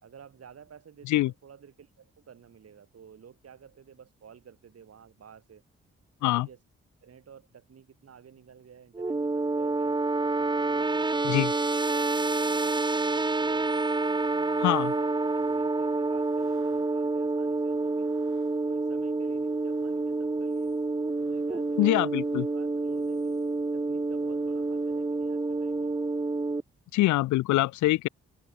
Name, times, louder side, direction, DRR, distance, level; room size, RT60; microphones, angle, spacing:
voice 1, 0.0-5.6 6.2-6.6 7.0-10.0 10.4-11.4 11.6-13.8 14.4-15.1 15.3-18.1 18.7-20.7 21.2-22.1 22.5-23.4 23.7-26.0, right 7 dB, 55° right, 1.9 m, -52 dB
sound 1, 8.9-26.6, right 3 dB, 15° right, 0.8 m, -28 dB
sound 2, 13.6-18.7 19.0-26.2 26.4-26.5, right 10 dB, 70° right, 4.5 m, -65 dB
voice 2, 14.6-14.9 21.8-22.5 26.9-28.1, left 17 dB, 70° left, 0.5 m, -24 dB
open air
hypercardioid pair, 40°, 30 cm